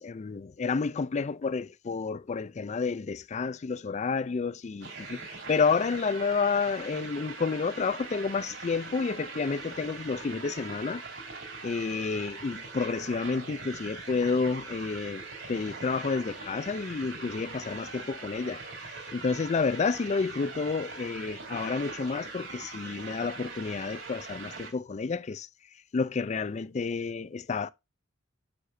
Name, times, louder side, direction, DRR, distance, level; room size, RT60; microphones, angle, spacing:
voice 1, 0.0-11.0 11.6-25.5 25.9-27.7, left 4 dB, 35° left, 0.4 m, -30 dB
sound 1, 4.8-24.7, right 4 dB, 65° right, 3.7 m, -42 dB
7.9 x 6.8 x 2.6 m
head